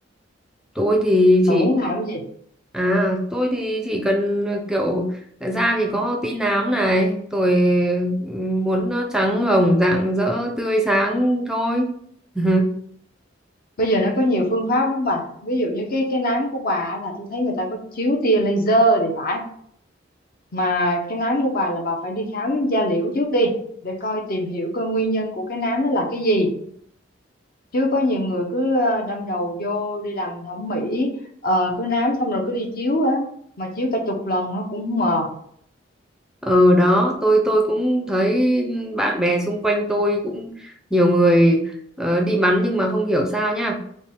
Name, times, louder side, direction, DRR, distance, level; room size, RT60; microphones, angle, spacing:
voice 1, 0.8-1.7 2.7-11.9 12.4-12.7 36.4-41.6 42.0-43.8, equal, 5° right, 2 dB, 0.5 m, -20 dB
voice 2, 1.5-2.2 13.8-19.4 20.5-23.5 23.8-26.5 27.7-31.1 31.4-33.3 33.6-35.3, equal, 50° left, 3 dB, 0.8 m, -22 dB
5.1 x 2.3 x 3.5 m, 0.65 s
head